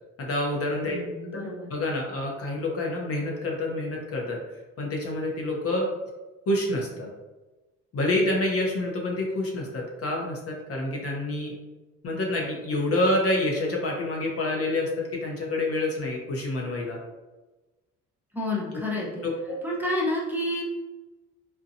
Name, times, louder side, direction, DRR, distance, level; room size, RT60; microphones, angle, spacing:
voice 1, 0.2-1.0 1.7-4.4 4.8-5.9 6.5-7.1 7.9-11.6 12.0-17.0 19.2-19.6, left 1 dB, 50° left, 0 dB, 0.6 m, -27 dB
voice 2, 0.9-1.7 18.3-19.2 19.6-20.6, left 1 dB, 5° right, -6 dB, 0.6 m, -29 dB
2.7 x 2.2 x 2.5 m, 1.1 s
cardioid pair, 90°, 30 cm